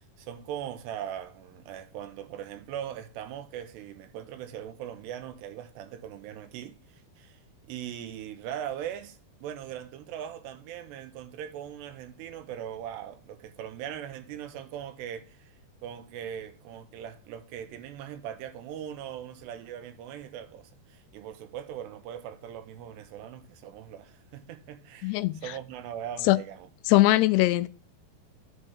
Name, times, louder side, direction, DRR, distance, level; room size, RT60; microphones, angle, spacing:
voice 1, 0.0-26.7, right 10 dB, 90° right, 3.1 m, -40 dB
voice 2, 25.0-25.4 26.3-26.4 26.9-27.7, left 18 dB, 90° left, 2.7 m, -21 dB
9.8 x 4.4 x 6.5 m
omnidirectional pair, 4.7 m